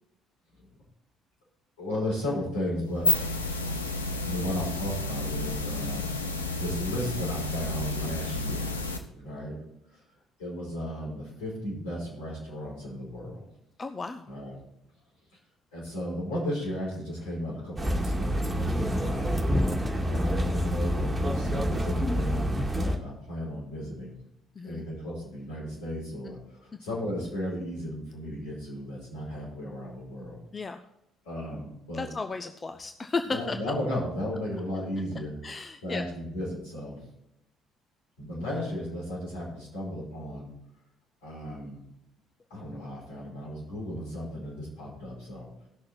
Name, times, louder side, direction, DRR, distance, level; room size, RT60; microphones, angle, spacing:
voice 1, 1.8-3.1 4.3-6.2 6.6-8.7 9.1-9.6 9.9-10.0 10.4-13.5 14.3-14.6 15.7-19.4 20.1-24.2 24.6-30.4 31.2-32.1 33.3-35.3 35.8-37.0 38.2-40.5 41.2-41.8 42.5-45.5, equal, 70° left, -5 dB, 5.2 m, -35 dB
sound 1, 2.8-9.0, left 2 dB, 85° left, 0.8 m, -31 dB
voice 2, 13.8-14.3 24.6-24.8 30.5-30.8 31.9-33.6 35.4-36.0, left 4 dB, 30° left, 7 dB, 0.6 m, -34 dB
sound 2, 17.8-23.0, equal, 15° right, 2.0 m, -27 dB
17.0 x 6.4 x 4.3 m, 0.84 s
figure-of-eight pair, 50°, 0 cm